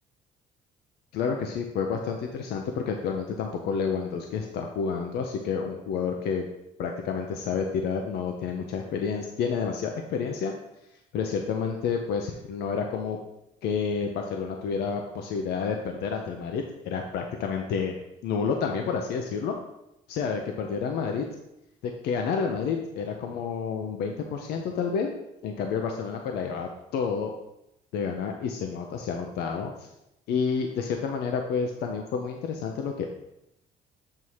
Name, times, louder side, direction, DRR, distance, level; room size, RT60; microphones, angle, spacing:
voice 1, 1.1-6.5 6.8-10.5 11.1-13.2 13.6-17.9 18.2-19.6 20.1-21.2 21.8-25.1 25.4-27.3 27.9-29.9 30.3-33.1, left 6 dB, 75° left, 3 dB, 0.6 m, -29 dB
7.5 x 2.8 x 4.7 m, 0.86 s
cardioid pair, 110°, 17 cm